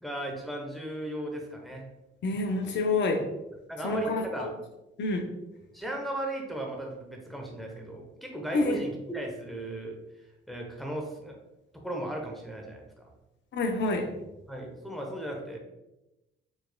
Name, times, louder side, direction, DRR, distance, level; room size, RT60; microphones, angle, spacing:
voice 1, 0.0-1.8 3.7-4.5 5.7-10.0 10.5-11.4 11.7-13.1 14.5-15.6, right 1 dB, ahead, 0 dB, 0.9 m, -36 dB
voice 2, 2.2-3.2 3.8-4.2 5.0-5.2 8.5-8.8 13.6-14.0, left 3 dB, 65° left, 4 dB, 0.7 m, -27 dB
4.8 x 3.1 x 2.2 m, 0.96 s
cardioid pair, 90°, 20 cm